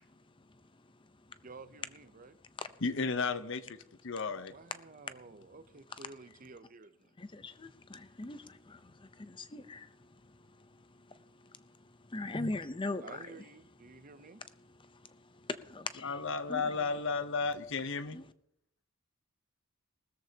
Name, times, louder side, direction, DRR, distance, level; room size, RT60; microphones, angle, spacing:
voice 1, 0.4-1.4 2.6-2.7 7.2-13.3 13.9-14.0 14.8-16.2 16.5-16.7 18.1-18.2, left 2 dB, 20° left, 0.6 m, -42 dB
voice 2, 1.4-2.4 4.5-7.1 13.0-14.4 16.5-17.1, right 3 dB, 35° right, 0.6 m, -52 dB
voice 3, 2.8-4.6 16.0-18.2, left 4 dB, 55° left, 0.8 m, -33 dB
19.5 x 13.5 x 2.8 m
head